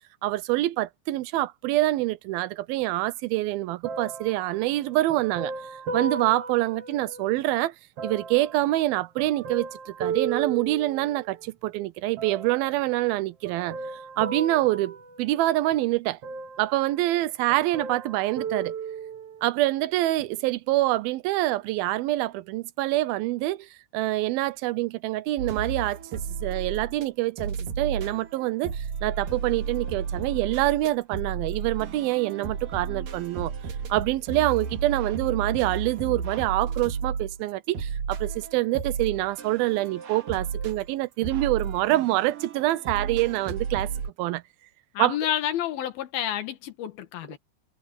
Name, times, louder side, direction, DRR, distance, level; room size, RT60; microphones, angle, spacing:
voice 1, 0.2-5.5 5.9-7.7 8.0-13.8 14.2-16.2 16.6-18.7 19.4-33.5 33.9-43.9 44.2-44.4 45.0-45.2, right 17 dB, 85° right, 2.6 m, -26 dB
sound 1, 3.8-7.4 8.0-11.5 12.2-12.8 13.4-15.8 16.2-17.2 17.5-19.5 20.2-20.3, right 5 dB, 50° right, 2.6 m, -36 dB
sound 2, 25.4-27.1 27.4-44.1, right 6 dB, 65° right, 4.0 m, -33 dB
voice 2, 45.0-47.4, left 11 dB, 90° left, 3.4 m, -29 dB
omnidirectional pair, 4.2 m